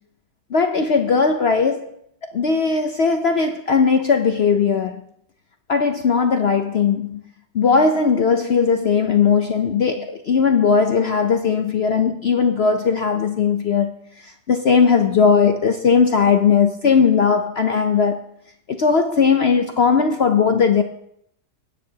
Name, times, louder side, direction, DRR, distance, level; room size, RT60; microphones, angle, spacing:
voice 1, 0.5-1.9 2.3-5.0 5.7-7.2 7.5-13.9 14.5-18.2 18.7-20.8, left 5 dB, 70° left, 0.6 m, -18 dB
21.0 x 9.7 x 2.8 m
omnidirectional pair, 1.9 m